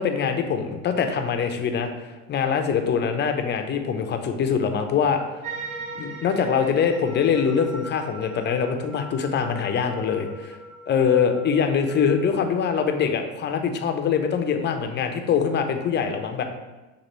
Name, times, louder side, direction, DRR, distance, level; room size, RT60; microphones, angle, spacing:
voice 1, 0.0-1.9 2.3-5.2 6.0-10.6 10.9-16.4, left 6 dB, 30° left, 6 dB, 0.5 m, -23 dB
sound 1, 5.4-13.1, right 2 dB, 70° right, 0.9 m, -40 dB
6.3 x 2.5 x 3.0 m, 1.1 s
supercardioid pair, 95°, 39 cm